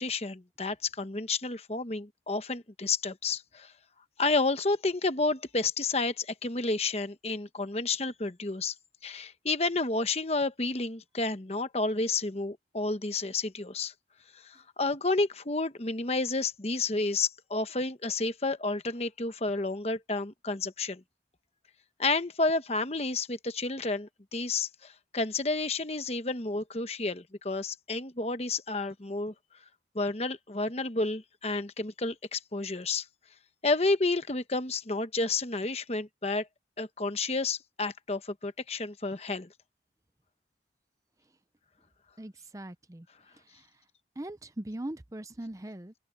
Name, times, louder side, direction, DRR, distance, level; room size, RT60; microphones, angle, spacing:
voice 1, 0.0-3.7 4.2-8.7 9.0-13.9 14.8-21.0 22.0-29.3 29.9-33.0 33.6-36.5 36.8-39.5, left 3 dB, 35° left, 1.1 m, -30 dB
voice 2, 42.2-43.1 43.5-43.7 44.2-45.9, right 1 dB, 20° right, 0.6 m, -40 dB
open air
head